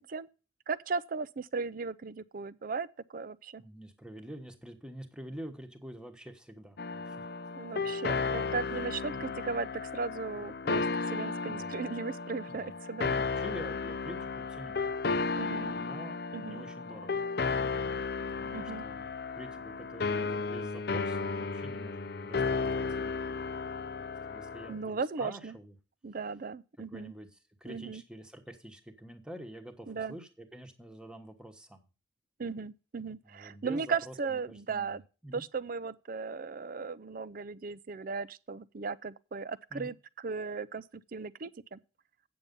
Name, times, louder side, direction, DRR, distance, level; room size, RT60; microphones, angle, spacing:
voice 1, 0.7-3.6 7.5-13.1 15.3-15.7 16.3-16.6 18.5-18.8 24.7-25.6 26.0-27.1 27.7-28.0 29.9-30.2 32.4-35.0 35.3-39.9 40.2-41.8, right 4 dB, 50° right, 0.5 m, -37 dB
voice 2, 3.6-7.2 8.7-9.4 10.3-10.5 11.4-11.8 12.5-14.8 15.7-17.2 18.2-19.1 19.4-23.2 23.9-25.8 26.9-31.9 33.2-35.4 39.7-39.9, right 1 dB, 5° right, 1.2 m, -47 dB
sound 1, 6.8-24.7, left 4 dB, 55° left, 0.6 m, -34 dB
8.7 x 7.0 x 5.3 m
head